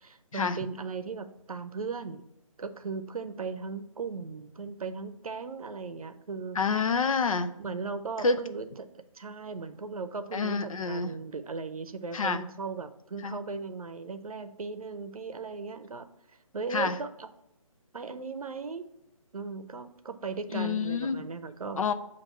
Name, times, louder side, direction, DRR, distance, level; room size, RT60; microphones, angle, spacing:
voice 1, 0.0-2.3 2.6-6.6 7.6-16.1 16.5-17.3 17.9-18.9 19.3-21.8, right 4 dB, 80° right, 10 dB, 0.6 m, -37 dB
voice 2, 6.6-7.5 8.2-8.4 10.3-11.1 12.1-12.4 13.2-13.4 16.7-17.0 20.5-21.2 21.8-21.9, left 4 dB, 70° left, 9 dB, 0.6 m, -28 dB
7.2 x 2.6 x 5.4 m, 0.83 s
figure-of-eight pair, 150°, 18 cm